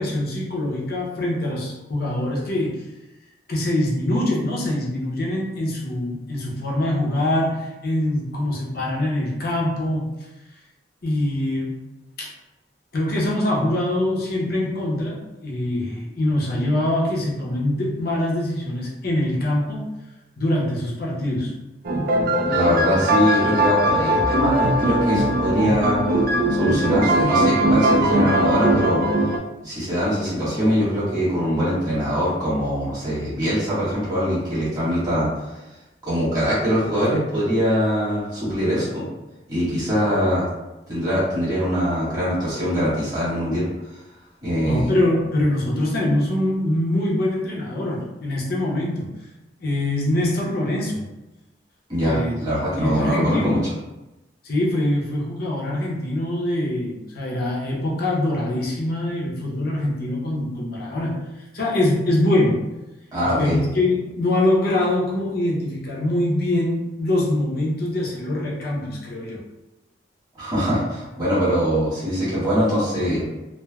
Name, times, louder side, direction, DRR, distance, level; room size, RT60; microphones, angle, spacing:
voice 1, 0.0-2.8 3.5-10.1 11.0-11.8 12.2-12.3 12.9-15.2 15.4-19.8 20.4-21.5 44.6-49.1 49.6-51.1 52.0-52.3 52.8-53.6 54.4-61.2 61.5-62.7 63.2-69.4, left 1 dB, 60° left, -3 dB, 0.7 m, -23 dB
sound 1, 21.8-29.4, right 1 dB, 55° right, 0.3 m, -20 dB
voice 2, 22.5-26.0 26.5-29.0 29.6-35.3 36.0-39.0 39.5-40.5 40.9-43.6 44.4-44.9 51.9-53.6 63.1-63.5 70.4-73.2, equal, 25° right, -10 dB, 1.4 m, -22 dB
3.2 x 2.1 x 2.2 m, 1.0 s
head